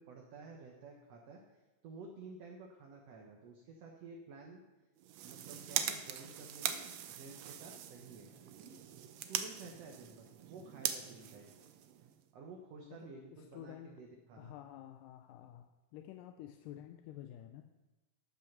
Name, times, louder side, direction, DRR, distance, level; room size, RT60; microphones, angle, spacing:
voice 1, 0.0-4.6 5.2-8.3 8.6-8.8 9.2-11.5 12.3-14.5, right 3 dB, 60° right, 0 dB, 1.8 m, -52 dB
sound 1, 5.0-12.3, right 10 dB, 90° right, 1.5 m, -41 dB
voice 2, 12.8-13.9 14.4-17.6, left 12 dB, 80° left, 6 dB, 2.2 m, -51 dB
13.0 x 5.8 x 6.0 m, 1.1 s
omnidirectional pair, 3.9 m